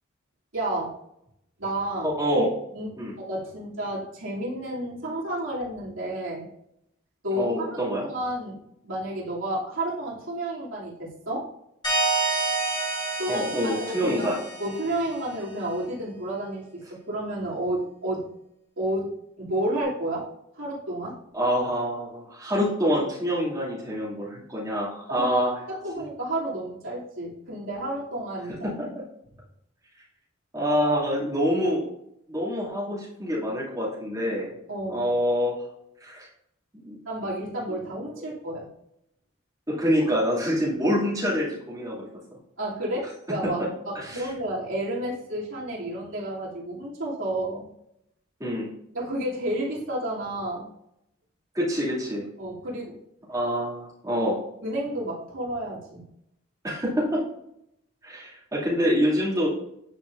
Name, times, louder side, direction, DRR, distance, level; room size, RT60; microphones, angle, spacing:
voice 1, 0.5-0.9 1.6-2.1 2.7-6.5 7.2-8.6 8.8-11.5 13.2-13.5 13.7-14.3 14.6-16.8 17.1-18.3 18.8-19.1 19.4-20.3 20.5-21.2 25.1-25.3 25.7-28.6 34.7-35.1 37.1-38.7 42.6-43.6 43.9-47.7 48.9-50.7 52.4-53.0 54.6-56.0, right 1 dB, 80° right, -6 dB, 2.7 m, -31 dB
voice 2, 2.0-2.5 3.0-3.1 7.3-8.1 13.3-14.4 21.3-25.5 28.6-29.0 30.5-31.9 32.3-34.5 34.9-35.6 36.0-36.3 36.7-37.0 37.7-37.8 38.2-38.3 39.7-42.1 43.4-43.5 43.9-44.3 48.4-48.7 51.5-52.2 53.3-54.4 56.6-57.2 58.0-59.5, equal, 15° right, -7 dB, 2.4 m, -26 dB
sound 1, 11.8-15.3, right 2 dB, 20° left, 1.9 m, -28 dB
9.9 x 4.8 x 2.5 m, 0.79 s
head